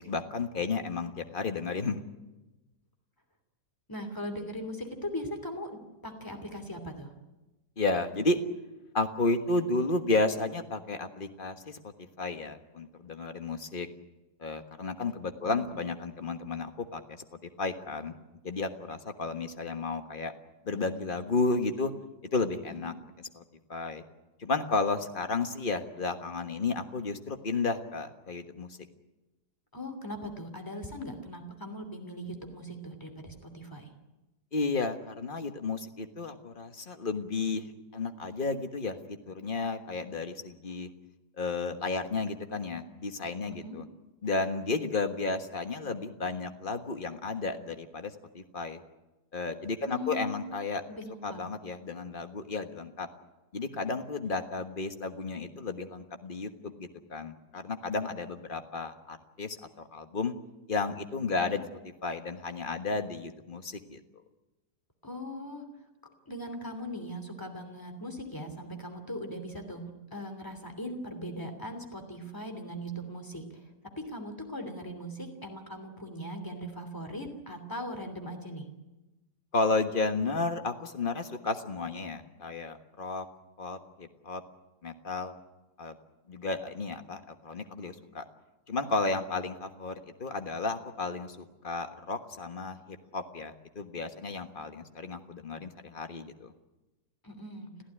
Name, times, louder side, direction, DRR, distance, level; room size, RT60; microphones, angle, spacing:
voice 1, 0.0-2.0 7.8-8.4 8.9-11.8 12.2-13.9 14.4-18.2 18.4-20.3 20.6-21.9 22.3-22.9 23.3-23.4 23.7-24.0 24.4-28.7 34.5-40.9 41.4-43.9 44.2-48.8 49.3-50.8 51.2-53.1 53.5-60.3 60.7-61.6 62.0-64.0 79.5-83.2 83.6-84.4 84.8-85.3 85.8-86.0 86.3-88.2 88.7-96.5, left 3 dB, 30° left, 7 dB, 1.5 m, -32 dB
voice 2, 3.9-7.1 15.5-15.7 22.7-22.9 29.7-33.9 43.5-43.8 49.8-50.5 50.9-51.4 61.4-61.6 65.0-65.6 66.3-73.4 74.1-78.6 97.2-97.7, equal, 10° left, 6 dB, 2.9 m, -39 dB
26.0 x 15.5 x 10.0 m, 1.1 s
omnidirectional pair, 1.9 m